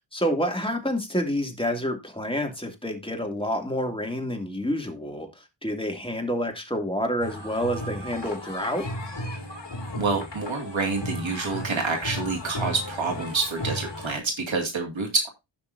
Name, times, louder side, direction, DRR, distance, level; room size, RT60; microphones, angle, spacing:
voice 1, 0.1-8.9, equal, 10° left, 3 dB, 2.5 m, -28 dB
sound 1, 7.2-14.2, left 1 dB, 65° left, 2.4 m, -35 dB
voice 2, 10.0-15.3, right 4 dB, 85° right, 2 dB, 2.3 m, -27 dB
16.0 x 5.8 x 2.7 m, 0.23 s
wide cardioid pair, 60°, 45 cm